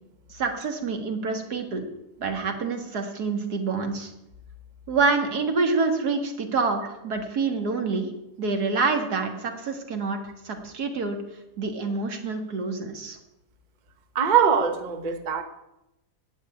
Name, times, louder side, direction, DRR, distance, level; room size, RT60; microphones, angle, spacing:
voice 1, 0.3-1.9 2.2-4.1 4.9-8.1 8.4-11.2 11.6-13.2, right 4 dB, 75° right, 5 dB, 2.2 m, -27 dB
voice 2, 14.1-15.4, right 7 dB, 35° right, 8 dB, 1.0 m, -22 dB
15.5 x 5.5 x 9.9 m, 0.90 s
omnidirectional pair, 1.7 m